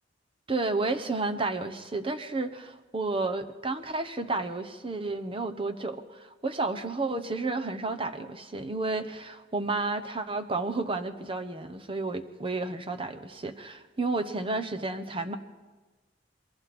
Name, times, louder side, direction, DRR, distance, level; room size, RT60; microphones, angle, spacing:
voice 1, 0.5-15.4, right 3 dB, 30° right, 7 dB, 1.1 m, -31 dB
27.5 x 22.0 x 4.4 m, 1.2 s
head